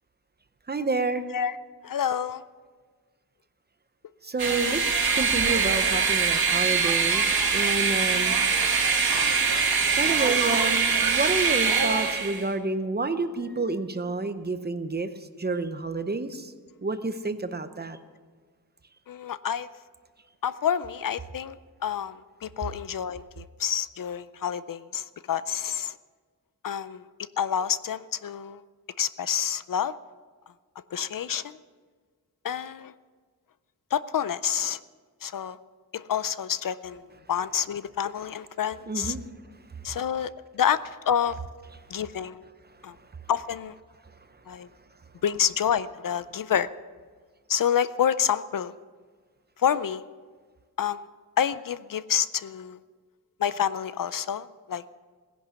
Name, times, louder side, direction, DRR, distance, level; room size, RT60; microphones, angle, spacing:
voice 1, 0.7-1.2 4.2-7.3 7.5-8.3 9.6-15.1 15.4-16.5 16.8-18.0 38.9-39.2, right 3 dB, 25° right, 10 dB, 0.7 m, -29 dB
voice 2, 1.8-2.4 19.1-19.7 20.4-21.6 21.8-26.0 26.6-27.0 27.4-28.6 29.0-29.9 30.9-31.6 32.4-32.9 33.9-34.8 35.2-35.6 35.9-37.0 37.3-39.2 39.8-41.4 41.9-42.5 42.8-42.9 43.3-43.7 44.5-44.7 45.2-46.7 47.5-48.7 49.6-50.0 50.8-51.1 51.4-52.8 53.4-54.9, left 8 dB, 60° left, 15 dB, 0.5 m, -28 dB
sound 1, 4.4-12.4, right 5 dB, 70° right, 1.8 m, -23 dB
17.5 x 11.0 x 7.0 m, 1.5 s
wide cardioid pair, 180°, 38 cm